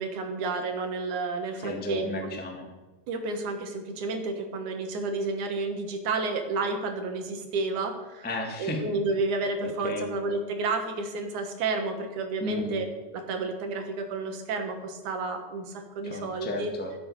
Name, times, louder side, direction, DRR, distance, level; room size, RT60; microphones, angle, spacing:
voice 1, 0.0-2.1 3.1-8.3 8.6-12.9 13.1-16.7, right 3 dB, 65° right, 5 dB, 2.7 m, -31 dB
voice 2, 1.6-2.7 8.2-9.0 9.6-10.1 12.4-12.8 16.0-17.0, left 1 dB, 10° left, 2 dB, 0.4 m, -33 dB
12.5 x 8.8 x 6.5 m, 1.2 s
omnidirectional pair, 4.1 m